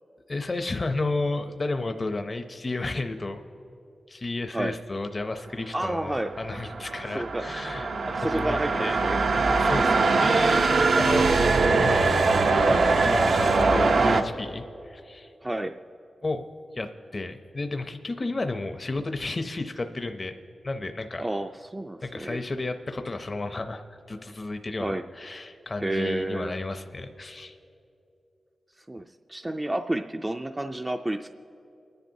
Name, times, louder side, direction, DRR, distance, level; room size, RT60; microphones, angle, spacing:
voice 1, 0.3-3.4 4.1-7.9 8.1-9.0 9.6-11.3 11.6-12.2 12.7-15.3 16.2-16.4 16.7-20.3 20.6-21.2 22.0-23.8 24.1-27.6, left 2 dB, 40° left, 7 dB, 0.5 m, -32 dB
voice 2, 5.7-6.3 7.1-7.5 8.1-9.2 15.4-15.8 21.2-22.4 24.8-25.0 25.8-26.6 28.9-31.3, right 1 dB, 20° right, 5 dB, 0.3 m, -30 dB
sound 1, 6.3-14.2, right 3 dB, 80° right, 0.6 m, -22 dB
29.5 x 10.5 x 2.7 m, 2.8 s
wide cardioid pair, 95°, 0 cm